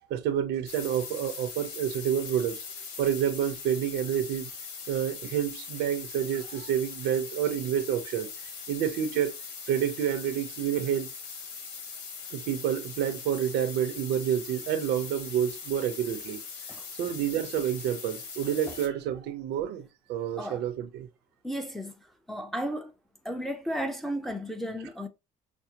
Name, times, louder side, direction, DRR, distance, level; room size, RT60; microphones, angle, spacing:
voice 1, 0.1-2.6 3.0-4.5 4.9-8.3 8.7-9.3 9.7-11.1 12.3-16.4 17.0-21.1, right 9 dB, 85° right, 0.7 m, -29 dB
sound 1, 0.7-18.9, left 5 dB, 90° left, 1.1 m, -41 dB
voice 2, 21.4-21.9 22.3-22.9 23.2-25.1, equal, ahead, 0.6 m, -34 dB
6.0 x 2.0 x 2.8 m
cardioid pair, 110°, 17 cm